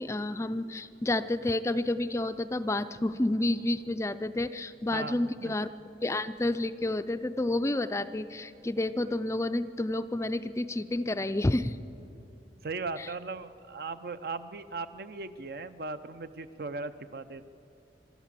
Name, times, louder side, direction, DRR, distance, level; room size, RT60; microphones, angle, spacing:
voice 1, 0.0-5.7 6.0-11.8 13.0-13.1, left 1 dB, 15° left, 11 dB, 0.4 m, -30 dB
voice 2, 4.9-5.6 12.6-17.4, right 3 dB, 55° right, 11 dB, 0.6 m, -38 dB
27.5 x 13.0 x 7.5 m, 2.9 s
head